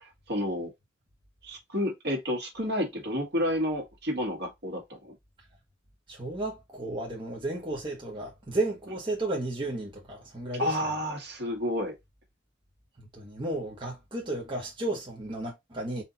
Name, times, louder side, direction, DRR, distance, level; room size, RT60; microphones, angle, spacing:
voice 1, 0.3-0.7 1.4-5.1 10.6-11.9, left 1 dB, 60° right, 1.7 m, -30 dB
voice 2, 6.1-10.7 13.1-16.0, right 2 dB, 25° right, 1.2 m, -33 dB
4.4 x 2.6 x 3.9 m
head